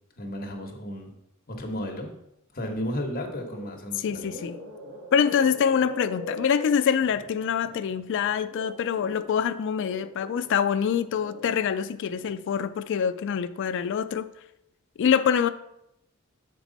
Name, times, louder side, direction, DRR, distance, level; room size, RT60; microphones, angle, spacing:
voice 1, 0.2-1.1 1.5-2.1 2.5-4.3, equal, 45° left, 1.1 m, -33 dB
sound 1, 3.4-3.8 4.0-9.3 9.8-11.5 11.9-12.3, left 1 dB, 70° right, 1.7 m, -41 dB
voice 2, 4.0-4.6 5.1-14.3 15.0-15.5, left 7 dB, 60° left, 0.3 m, -25 dB
7.2 x 4.6 x 3.9 m
head